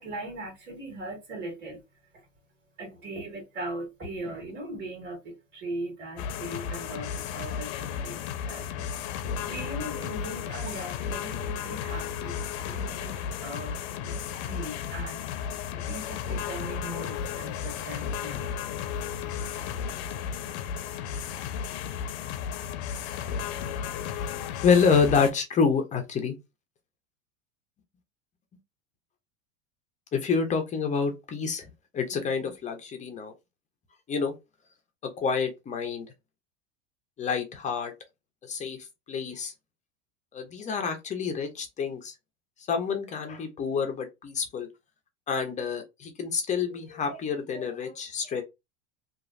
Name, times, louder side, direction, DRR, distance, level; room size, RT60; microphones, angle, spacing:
voice 1, 0.0-1.8 2.1-2.2 2.8-18.5, right 1 dB, 25° right, 1.7 m, -40 dB
sound 1, 6.2-25.3, left 7 dB, 60° left, 0.6 m, -34 dB
voice 2, 24.6-26.4 30.1-31.7 31.9-33.3 34.1-34.3 35.0-36.1 37.2-37.9 38.5-38.8 39.1-39.5 40.3-42.1 42.7-44.7 45.3-48.4, left 5 dB, 20° left, 0.5 m, -27 dB
3.0 x 2.4 x 2.4 m
supercardioid pair, 135°, 38 cm